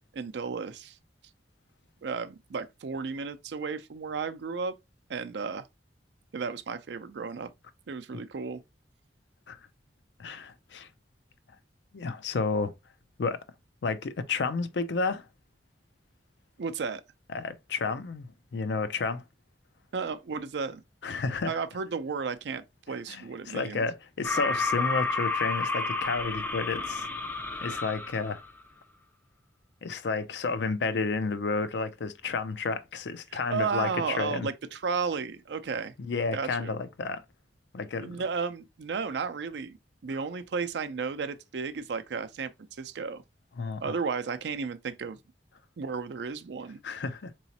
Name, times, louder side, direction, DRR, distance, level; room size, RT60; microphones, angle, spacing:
voice 1, 0.1-1.0 2.0-4.7 5.1-5.7 6.3-7.5 7.9-8.6 16.6-17.0 19.9-20.8 21.5-23.8 33.5-35.9 36.3-36.7 38.0-39.8 40.0-43.2 43.8-45.2 45.8-46.8, right 5 dB, 70° right, 0.4 m, -33 dB
voice 2, 10.2-10.9 11.9-12.7 13.2-13.4 13.8-15.3 17.3-19.2 21.0-21.6 23.1-27.1 27.6-28.4 29.8-33.9 34.2-34.5 36.0-37.2 37.7-38.2 43.6-44.0 46.8-47.3, left 4 dB, 70° left, 0.4 m, -31 dB
sound 1, 24.2-28.4, left 3 dB, 10° left, 0.3 m, -31 dB
3.9 x 3.0 x 2.8 m
head